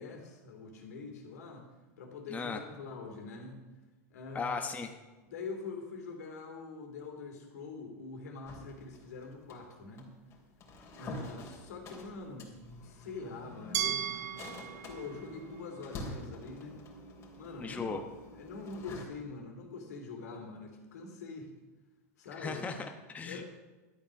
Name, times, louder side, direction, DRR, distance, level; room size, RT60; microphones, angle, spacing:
voice 1, 0.0-1.6 2.0-3.6 4.1-4.6 5.3-10.1 10.9-12.5 12.8-14.3 14.9-16.8 17.4-17.9 18.4-21.5 22.2-22.6 23.2-23.5, left 4 dB, 80° left, 2 dB, 3.3 m, -44 dB
voice 2, 2.3-2.6 4.3-4.9 17.6-18.0 22.4-23.5, left 4 dB, 15° left, 5 dB, 1.0 m, -37 dB
sound 1, 8.4-19.0, left 1 dB, 35° left, 3.2 m, -47 dB
Glass, 13.7-16.7, right 10 dB, 85° right, 0.9 m, -38 dB
12.5 x 9.1 x 6.4 m, 1.2 s
hypercardioid pair, 120°, 9 cm